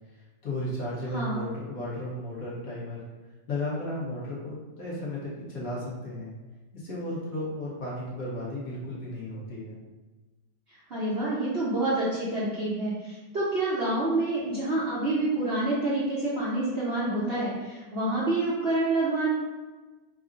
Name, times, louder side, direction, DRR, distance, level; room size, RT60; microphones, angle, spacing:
voice 1, 0.4-3.0 3.5-6.3 6.7-9.8, left 1 dB, 55° left, -7 dB, 1.4 m, -34 dB
voice 2, 1.1-1.5 10.9-19.3, right 2 dB, 50° right, -9 dB, 0.8 m, -27 dB
3.7 x 2.1 x 3.8 m, 1.2 s
omnidirectional pair, 1.9 m